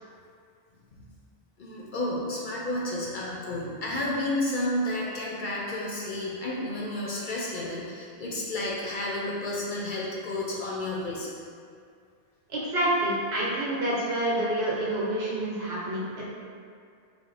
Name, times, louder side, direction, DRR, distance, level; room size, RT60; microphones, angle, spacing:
voice 1, 1.6-11.3, left 1 dB, 60° left, -4 dB, 0.6 m, -31 dB
voice 2, 12.5-16.2, right 1 dB, 70° right, -6 dB, 1.1 m, -28 dB
4.3 x 2.1 x 3.8 m, 2.3 s
omnidirectional pair, 1.1 m